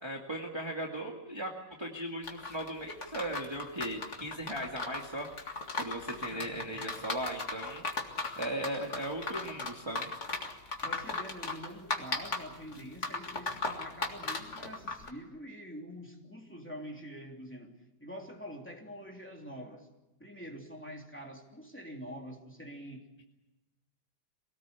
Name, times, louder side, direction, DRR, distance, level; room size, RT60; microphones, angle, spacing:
voice 1, 0.0-1.5 1.8-5.3 5.8-7.8 8.4-10.1, right 1 dB, 15° right, 0 dB, 2.0 m, -37 dB
sound 1, 2.2-15.1, left 3 dB, 45° left, 2.4 m, -37 dB
voice 2, 6.2-7.1 10.8-19.9 20.2-23.2, equal, 5° left, 0 dB, 3.1 m, -46 dB
24.5 x 18.5 x 8.4 m, 1.0 s
omnidirectional pair, 1.8 m